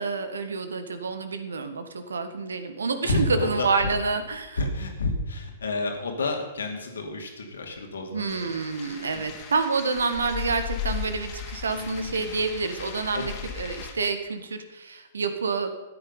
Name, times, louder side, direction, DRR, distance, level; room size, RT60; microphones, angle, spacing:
voice 1, 0.0-4.6 8.1-15.7, right 4 dB, 75° right, 9 dB, 1.5 m, -28 dB
voice 2, 3.0-3.7 4.6-8.5 9.1-9.2 11.7-12.3 13.1-13.3, left 2 dB, 70° left, 4 dB, 2.5 m, -30 dB
sound 1, 8.3-13.9, left 8 dB, 35° left, 2.2 m, -37 dB
14.0 x 9.8 x 5.4 m, 1.0 s
figure-of-eight pair, 110°, 0 cm